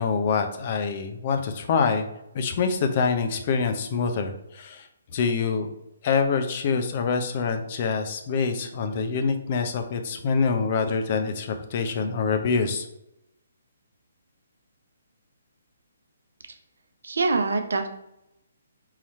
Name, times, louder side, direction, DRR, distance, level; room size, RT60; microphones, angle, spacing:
voice 1, 0.0-2.1 2.3-4.9 5.1-5.7 6.0-12.8, left 5 dB, 45° left, 6 dB, 0.6 m, -25 dB
voice 2, 17.0-17.9, right 3 dB, 75° right, 6 dB, 0.6 m, -24 dB
3.9 x 3.0 x 4.2 m, 0.86 s
figure-of-eight pair, 140°, 0 cm